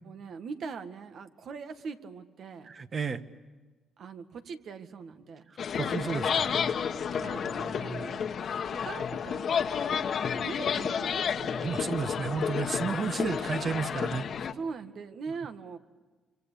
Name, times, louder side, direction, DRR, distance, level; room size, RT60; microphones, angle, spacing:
voice 1, 0.1-2.7 4.0-5.5 7.1-9.7 10.2-12.1 14.5-15.8, right 5 dB, 65° right, 8 dB, 1.9 m, -42 dB
voice 2, 2.6-3.2 5.7-6.5 7.2-8.1 11.6-14.3, right 5 dB, 45° right, 9 dB, 1.5 m, -33 dB
sound 1, 5.6-14.5, left 7 dB, 60° left, 1.4 m, -31 dB
26.5 x 25.5 x 8.5 m, 1.3 s
cardioid pair, 90°, 0 cm